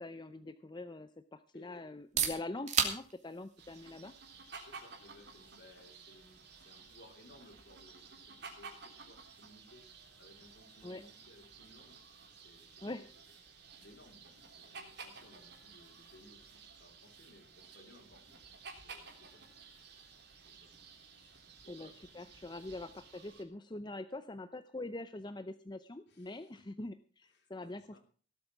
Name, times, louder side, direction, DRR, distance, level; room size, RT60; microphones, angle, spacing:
voice 1, 0.0-4.1 10.8-11.0 12.8-13.1 21.7-28.0, left 2 dB, 25° left, 10 dB, 0.6 m, -44 dB
voice 2, 1.5-1.9 4.6-9.9 10.2-12.0 12.3-13.2 13.5-19.4 19.9-20.1 20.6-20.7 21.2-22.1 22.7-22.8 26.1-26.8 27.3-28.0, left 1 dB, 60° left, 3 dB, 4.0 m, -61 dB
sound 1, 1.9-17.5, right 7 dB, 40° right, 2.9 m, -43 dB
sound 2, 3.6-23.4, right 4 dB, 60° right, 3.6 m, -54 dB
18.0 x 8.5 x 6.0 m, 0.41 s
head